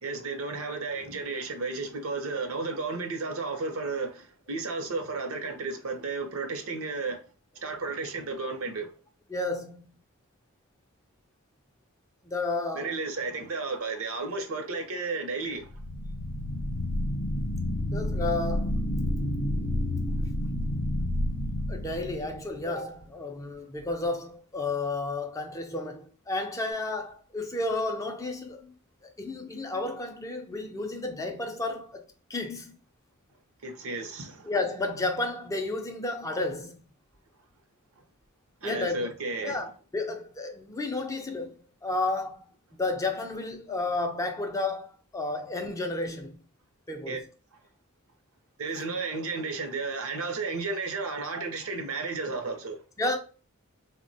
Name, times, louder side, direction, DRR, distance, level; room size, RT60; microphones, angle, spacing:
voice 1, 0.0-7.2 7.6-8.9 12.7-15.7 33.6-34.5 38.6-39.6 47.1-47.2 48.6-52.8, right 3 dB, 70° right, 0.6 m, -33 dB
voice 2, 9.3-9.9 12.2-13.0 17.9-18.7 21.7-28.7 29.0-32.0 32.3-32.8 34.4-36.8 38.6-39.0 39.4-42.4 42.7-46.4 46.9-47.2 53.0-53.2, left 2 dB, 15° left, 0.4 m, -32 dB
sound 1, 15.6-22.6, left 1 dB, 80° left, 0.6 m, -30 dB
3.5 x 2.1 x 2.5 m
head